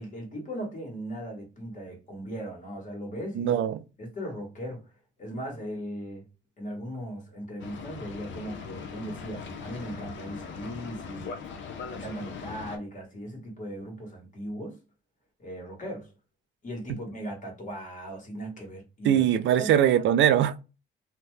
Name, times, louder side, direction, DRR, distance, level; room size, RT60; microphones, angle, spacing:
voice 1, 0.0-3.6 4.0-4.8 5.2-6.3 6.6-11.4 11.9-14.8 15.4-16.1 16.6-19.2 19.6-19.7, equal, 40° left, 1.5 m, -38 dB
voice 2, 3.3-3.8 16.9-17.0 19.0-20.6, right 10 dB, 70° right, 0.5 m, -22 dB
Boat Water vehicle, 7.6-12.8, left 5 dB, 70° left, 0.6 m, -40 dB
2.8 x 2.2 x 3.2 m
cardioid pair, 90°, 20 cm